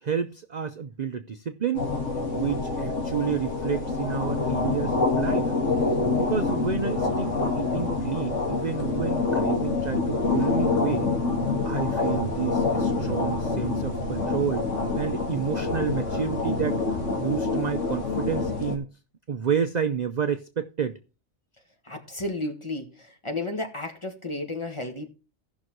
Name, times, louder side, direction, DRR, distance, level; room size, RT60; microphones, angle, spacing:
voice 1, 0.0-1.9 2.3-5.5 6.1-11.1 11.6-14.7 15.0-18.9 19.3-21.0, right 7 dB, 45° right, 0.6 m, -30 dB
sound 1, 1.7-18.8, left 3 dB, 70° left, 2.1 m, -26 dB
voice 2, 21.8-25.1, left 2 dB, 20° left, 1.6 m, -33 dB
16.5 x 6.2 x 3.1 m
omnidirectional pair, 1.4 m